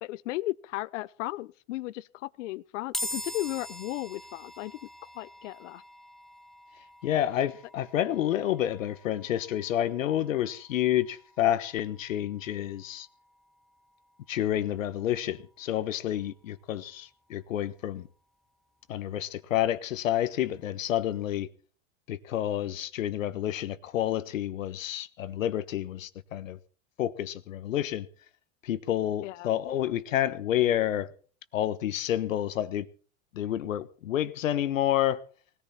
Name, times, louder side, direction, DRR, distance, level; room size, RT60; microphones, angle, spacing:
voice 1, 0.0-4.9 5.1-5.8 29.2-29.5, left 18 dB, 65° left, 0.8 m, -35 dB
sound 1, 2.9-16.3, left 1 dB, ahead, 0.6 m, -45 dB
voice 2, 7.0-13.1 14.3-18.1 18.9-21.5 22.1-26.6 27.0-28.1 28.6-31.1 31.5-32.9 33.3-35.2, left 12 dB, 85° left, 1.3 m, -29 dB
20.0 x 14.0 x 4.3 m
supercardioid pair, 125°, 39 cm